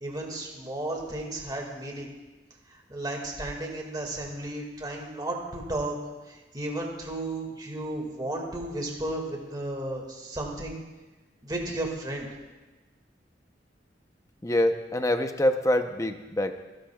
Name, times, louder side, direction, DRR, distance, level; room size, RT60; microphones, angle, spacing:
voice 1, 0.0-2.1 2.7-6.0 6.3-10.8 11.4-12.3, right 1 dB, 25° right, 0 dB, 2.0 m, -34 dB
voice 2, 14.4-16.5, left 1 dB, 20° left, 7 dB, 0.7 m, -25 dB
25.5 x 12.0 x 2.3 m, 1.2 s
head